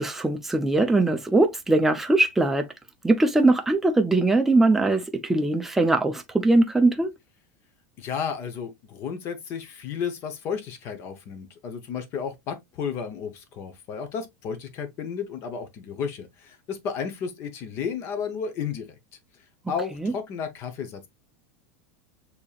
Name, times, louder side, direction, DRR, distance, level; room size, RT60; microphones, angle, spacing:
voice 1, 0.0-2.7 3.0-7.1 20.0-20.1, right 2 dB, 5° right, 0.5 m, -21 dB
voice 2, 8.0-18.9 19.3-21.1, left 6 dB, 35° left, 0.8 m, -33 dB
6.7 x 2.8 x 2.3 m
supercardioid pair, 155°, 7 cm